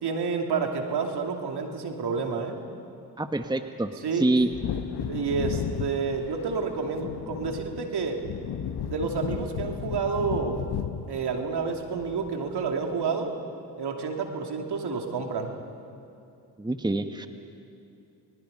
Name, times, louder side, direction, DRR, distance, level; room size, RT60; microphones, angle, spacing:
voice 1, 0.0-2.6 4.0-4.3 5.1-8.2 8.9-10.6 11.1-13.3 13.8-15.5, right 5 dB, 65° right, 3 dB, 2.9 m, -29 dB
voice 2, 3.2-4.5 16.6-17.3, right 2 dB, 10° right, 7 dB, 1.3 m, -26 dB
Wind / Thunder, 4.4-12.7 12.9-13.0, left 8 dB, 65° left, 1.2 m, -34 dB
29.0 x 20.5 x 5.5 m, 2.7 s
supercardioid pair, 50°, 43 cm